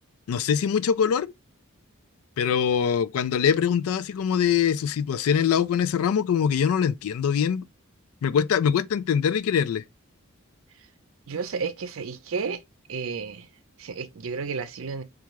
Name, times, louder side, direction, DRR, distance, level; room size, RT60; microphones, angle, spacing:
voice 1, 0.3-1.3 2.4-7.7 8.2-9.8, left 7 dB, 80° left, 0.3 m, -23 dB
voice 2, 11.3-12.6 12.9-13.5 13.8-15.0, right 5 dB, 70° right, 0.6 m, -32 dB
3.5 x 2.4 x 3.0 m
head